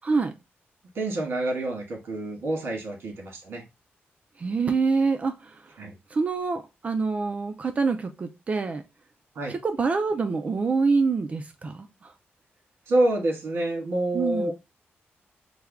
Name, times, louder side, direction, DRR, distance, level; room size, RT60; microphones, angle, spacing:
voice 1, 0.0-0.3 4.4-5.6 6.1-8.8 9.5-12.1 14.1-14.5, right 4 dB, 35° right, 0.3 m, -26 dB
voice 2, 0.9-3.6 5.8-5.9 9.3-9.5 12.9-14.5, right 1 dB, 85° right, 1.6 m, -27 dB
3.3 x 2.2 x 3.5 m
wide cardioid pair, 160°, 4 cm